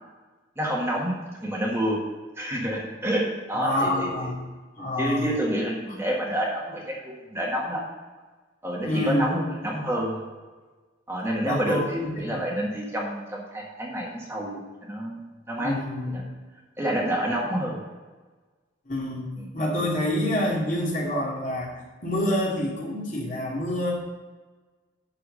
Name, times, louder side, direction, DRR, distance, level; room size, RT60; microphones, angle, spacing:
voice 1, 0.6-1.2 1.4-2.0 2.4-4.3 4.8-7.8 8.6-10.2 11.1-15.7 16.8-17.8 19.4-19.5, right 1 dB, 15° right, -3 dB, 1.7 m, -28 dB
voice 2, 3.6-4.3 4.8-5.3 8.8-9.3 11.4-12.4 15.6-16.1 18.9-19.3 19.5-23.9, left 1 dB, 40° left, -4 dB, 2.6 m, -27 dB
11.5 x 4.7 x 6.6 m, 1.3 s
head